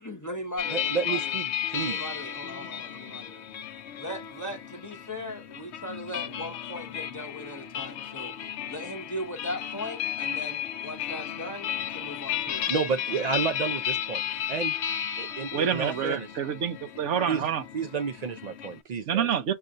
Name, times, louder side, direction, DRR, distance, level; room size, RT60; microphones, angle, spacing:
voice 1, 0.0-1.4 1.7-3.5 4.0-8.3 8.7-12.7, left 1 dB, 15° left, 0.8 m, -38 dB
sound 1, 0.6-18.8, left 10 dB, 65° left, 0.8 m, -34 dB
voice 2, 0.7-2.0 12.7-14.2 14.5-14.8 15.2-16.3 17.3-17.5 17.7-19.3, right 5 dB, 55° right, 0.4 m, -31 dB
voice 3, 15.5-17.6 19.1-19.5, right 8 dB, 70° right, 1.0 m, -27 dB
6.7 x 2.5 x 2.5 m
omnidirectional pair, 1.3 m